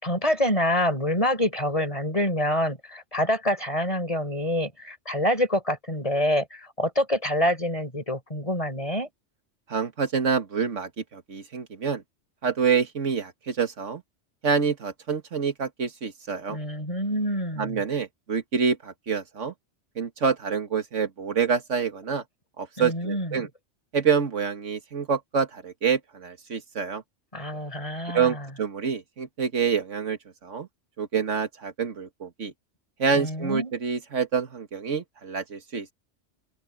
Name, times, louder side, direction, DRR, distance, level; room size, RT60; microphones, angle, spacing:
voice 1, 0.0-9.1 16.5-17.8 22.8-23.4 27.3-28.5 33.1-33.7, left 1 dB, 30° left, 5.5 m, -26 dB
voice 2, 9.7-12.0 12.4-14.0 14.4-16.6 17.6-19.5 20.0-22.2 22.6-23.5 23.9-27.0 28.1-30.7 31.0-32.5 33.0-35.9, right 6 dB, 90° right, 2.0 m, -27 dB
omnidirectional pair, 1.2 m